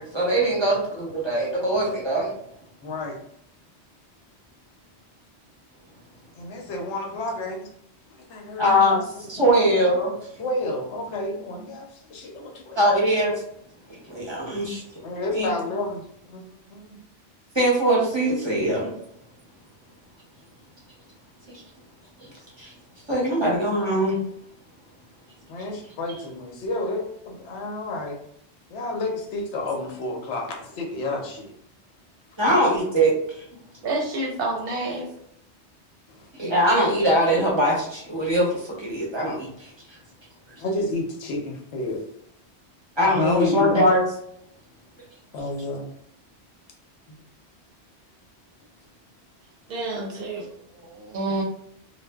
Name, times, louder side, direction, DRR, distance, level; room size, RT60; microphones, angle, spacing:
voice 1, 0.0-2.3 8.6-9.0 9.3-10.2 12.7-13.3 14.1-14.8 15.3-15.5 17.5-18.9 22.6-22.7 23.1-24.2 32.4-33.4 36.3-39.7 43.0-44.0, equal, 30° right, -4 dB, 0.7 m, -21 dB
voice 2, 2.8-3.2 6.3-7.7 8.3-8.9 9.4-9.6 10.4-12.8 15.0-17.0 25.5-28.2 28.7-31.5 36.1-36.3 40.6-42.0 43.1-43.9 45.3-45.9, left 2 dB, 90° left, 1 dB, 1.0 m, -30 dB
voice 3, 33.8-35.1 49.7-51.4, right 2 dB, 65° right, 1 dB, 0.7 m, -29 dB
2.5 x 2.2 x 2.2 m, 0.69 s
omnidirectional pair, 1.1 m